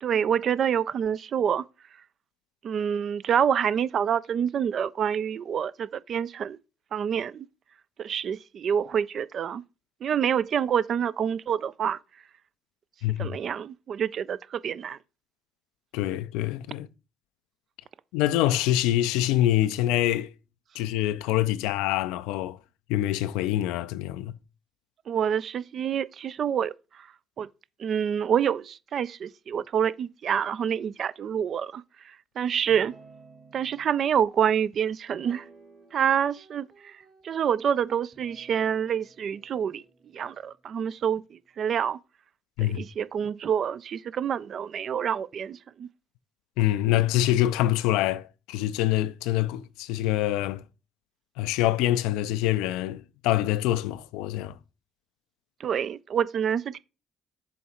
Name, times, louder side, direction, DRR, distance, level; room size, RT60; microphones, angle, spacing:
voice 1, 0.0-1.7 2.6-6.6 6.9-7.5 8.0-9.6 10.0-12.0 13.2-15.0 25.1-27.5 27.8-32.9 33.5-35.5 35.9-39.8 40.1-42.0 42.6-45.9 55.6-56.8, right 8 dB, 60° right, 0.3 m, -27 dB
voice 2, 13.0-13.4 15.9-16.9 18.1-20.3 20.8-22.6 22.9-24.3 42.6-42.8 46.6-50.6 51.4-54.6, left 14 dB, 80° left, 0.3 m, -25 dB
Guitar, 32.7-33.9 35.1-36.1 36.4-37.5 38.1-41.6, right 4 dB, 40° right, 1.7 m, -55 dB
7.1 x 3.1 x 4.3 m
hypercardioid pair, 55°, 0 cm